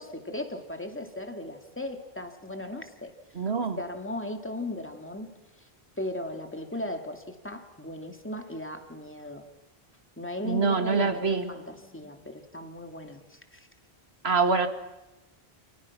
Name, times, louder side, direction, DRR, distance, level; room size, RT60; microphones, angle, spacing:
voice 1, 0.0-3.1 3.8-5.3 5.6-5.7 6.0-9.5 10.2-13.7, left 1 dB, 10° left, 5 dB, 2.5 m, -37 dB
voice 2, 3.3-3.8 10.5-11.5 14.2-14.7, right 4 dB, 80° right, 7 dB, 2.3 m, -25 dB
29.5 x 29.5 x 6.1 m, 1.0 s
omnidirectional pair, 1.1 m